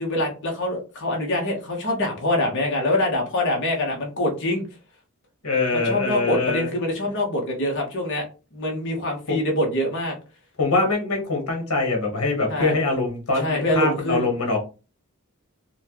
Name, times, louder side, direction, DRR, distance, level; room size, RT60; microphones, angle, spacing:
voice 1, 0.0-4.6 5.7-8.3 8.5-10.1 12.5-12.8 13.3-14.3, left 1 dB, 55° left, 0 dB, 1.0 m, -24 dB
voice 2, 5.4-6.7 9.3-9.4 10.6-14.6, left 3 dB, 75° left, 1 dB, 1.2 m, -23 dB
4.2 x 2.3 x 2.9 m, 0.33 s
head